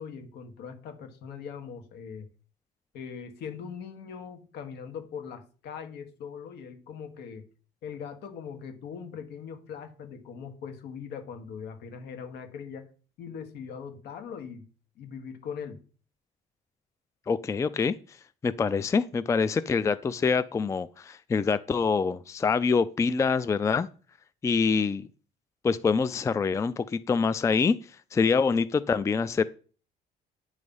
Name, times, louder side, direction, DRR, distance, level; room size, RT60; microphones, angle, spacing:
voice 1, 0.0-2.3 2.9-7.5 7.8-12.9 13.2-14.7 15.0-15.8, left 6 dB, 75° left, 1.4 m, -41 dB
voice 2, 17.3-18.0 18.4-23.9 24.4-25.1 25.6-27.8 28.1-29.4, left 5 dB, 20° left, 0.3 m, -25 dB
8.7 x 3.2 x 5.4 m
cardioid pair, 110°, 17 cm